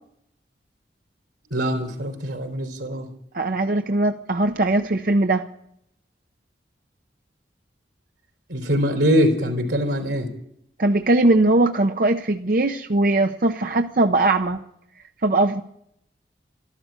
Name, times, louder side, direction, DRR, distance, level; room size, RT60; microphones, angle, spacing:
voice 1, 1.5-3.1 8.5-10.3, equal, 90° right, 4 dB, 3.7 m, -23 dB
voice 2, 3.3-5.4 10.8-14.6 15.2-15.6, right 2 dB, 50° right, 6 dB, 0.7 m, -20 dB
13.5 x 12.5 x 8.8 m, 0.72 s
head